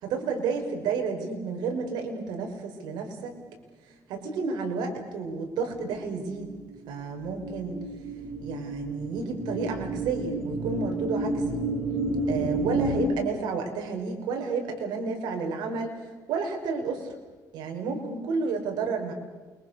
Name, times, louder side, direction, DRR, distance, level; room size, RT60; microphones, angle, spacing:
voice 1, 0.0-3.3 4.1-6.5 6.9-7.8 8.4-11.6 12.3-17.1 17.5-19.1, right 4 dB, 85° right, 3 dB, 5.6 m, -31 dB
sound 1, 5.8-13.1, right 1 dB, 40° right, 3.1 m, -31 dB
29.0 x 24.0 x 6.7 m, 1.3 s
cardioid pair, 105°, 7 cm